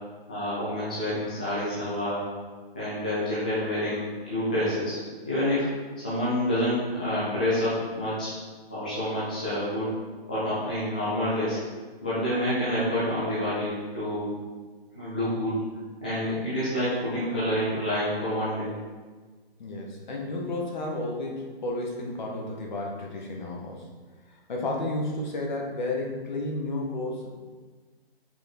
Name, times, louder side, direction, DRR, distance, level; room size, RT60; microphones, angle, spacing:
voice 1, 0.3-2.3 2.7-5.0 5.2-5.7 6.0-8.3 8.7-9.9 10.3-11.6 12.0-14.4 14.9-15.6 16.0-18.7, left 1 dB, 10° left, -11 dB, 0.4 m, -28 dB
voice 2, 19.6-23.9 24.5-27.3, left 2 dB, 45° left, -1 dB, 1.5 m, -32 dB
6.1 x 5.2 x 4.4 m, 1.4 s
hypercardioid pair, 160°, 31 cm